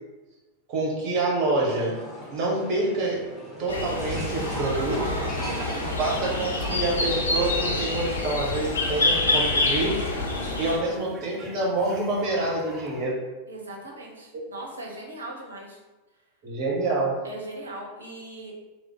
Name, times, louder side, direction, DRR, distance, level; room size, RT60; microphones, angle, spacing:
voice 1, 0.7-2.0 2.3-3.3 3.6-5.0 6.0-10.0 10.6-13.2 16.4-17.1, right 2 dB, 35° right, -3 dB, 1.2 m, -27 dB
sound 1, 1.7-10.5, right 1 dB, 5° left, 1.2 m, -42 dB
sound 2, 3.7-10.8, left 2 dB, 75° left, 0.6 m, -27 dB
sound 3, 4.1-13.1, right 2 dB, 20° right, 0.4 m, -41 dB
voice 2, 4.7-6.0 10.8-10.9 13.5-15.8 17.2-18.5, right 1 dB, 75° right, -1 dB, 0.7 m, -39 dB
3.2 x 2.1 x 3.8 m, 1.1 s
figure-of-eight pair, 90°, 0 cm